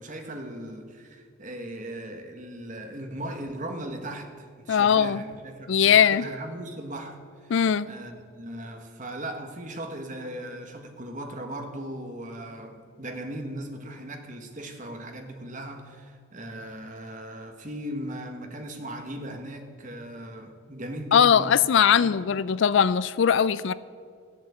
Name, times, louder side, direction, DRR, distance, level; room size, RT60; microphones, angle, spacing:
voice 1, 0.0-7.5 7.8-21.6 21.9-22.2, right 1 dB, 35° right, 5 dB, 1.4 m, -38 dB
voice 2, 4.7-5.2 5.7-6.3 7.5-7.9 21.1-23.7, left 8 dB, 60° left, 17 dB, 0.3 m, -20 dB
15.0 x 7.4 x 8.4 m, 2.1 s
head